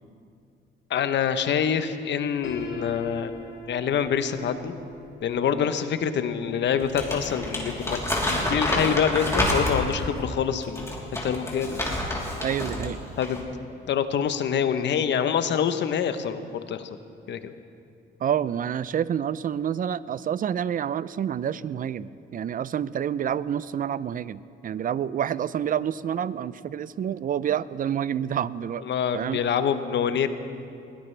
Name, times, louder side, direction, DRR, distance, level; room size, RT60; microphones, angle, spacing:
voice 1, 0.9-3.3 3.7-4.7 5.2-10.9 11.2-11.8 13.2-13.5 13.9-16.9 17.3-17.5 28.9-30.3, left 8 dB, 65° left, 10 dB, 0.9 m, -26 dB
Piano, 2.4-8.3, left 3 dB, 85° left, 1.9 m, -42 dB
Crumpling crinkling, 6.8-10.0 10.6-12.9 13.2-13.4, left 1 dB, 15° left, 3.3 m, -28 dB
voice 2, 12.4-13.1 18.2-28.8 29.1-29.4, right 9 dB, 45° right, 18 dB, 0.4 m, -28 dB
21.5 x 16.5 x 3.3 m, 2.5 s
cardioid pair, 90°, 20 cm